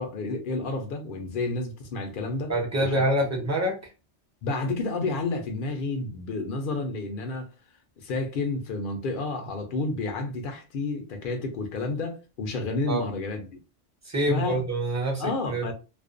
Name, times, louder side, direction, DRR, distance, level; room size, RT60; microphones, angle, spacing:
voice 1, 0.0-2.5 2.8-3.0 4.4-7.5 8.0-13.5 14.3-14.6 15.2-15.7, left 3 dB, 60° left, 0.6 m, -30 dB
voice 2, 2.5-3.8 12.9-13.1 14.0-15.7, right 1 dB, 20° right, 0.5 m, -26 dB
2.4 x 2.1 x 2.4 m
omnidirectional pair, 1.2 m